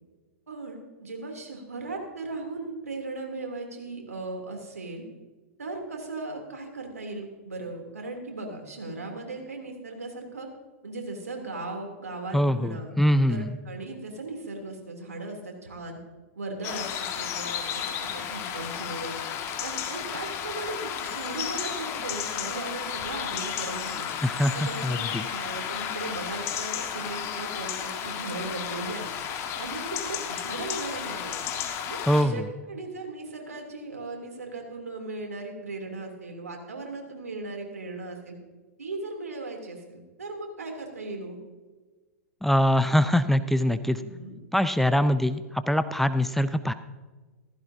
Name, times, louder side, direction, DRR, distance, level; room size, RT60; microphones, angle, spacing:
voice 1, 0.5-5.0 5.6-10.5 10.8-13.0 13.3-16.0 16.3-19.2 19.6-24.1 24.5-29.1 29.6-31.4 31.9-38.3 38.8-41.4 43.9-44.4, right 2 dB, 90° right, 2 dB, 3.0 m, -37 dB
voice 2, 12.3-13.5 24.2-25.2 32.1-32.5 42.4-44.0 44.5-46.7, equal, 5° left, 12 dB, 0.5 m, -23 dB
sound 1, 16.6-32.2, left 8 dB, 35° left, 1.6 m, -33 dB
15.5 x 15.0 x 2.8 m, 1.3 s
hypercardioid pair, 115°, 8 cm